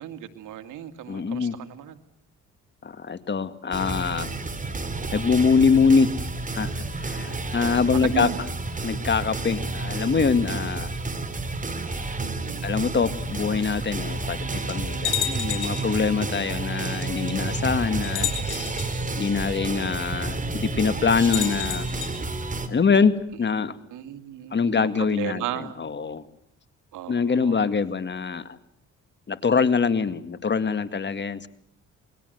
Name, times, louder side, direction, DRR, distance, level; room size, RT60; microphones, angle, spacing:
voice 1, 0.0-2.0 5.8-5.9 7.2-8.4 12.2-12.7 23.9-25.8 26.9-27.7, right 11 dB, 85° right, 8 dB, 2.4 m, -36 dB
voice 2, 1.1-1.6 2.8-4.3 5.1-6.1 6.5-6.7 7.0-8.3 8.8-10.9 12.6-18.9 19.2-21.9 22.7-23.8 24.5-25.4 25.8-26.2 27.1-28.4 29.3-31.5, left 5 dB, 35° left, 12 dB, 2.1 m, -24 dB
sound 1, 3.7-22.7, right 2 dB, 25° right, 3.8 m, -30 dB
sound 2, 15.0-15.9 17.0-17.1 18.0-18.9 21.2-22.1, left 11 dB, 80° left, 5.1 m, -30 dB
28.5 x 21.5 x 8.0 m, 0.71 s
cardioid pair, 90°, 30 cm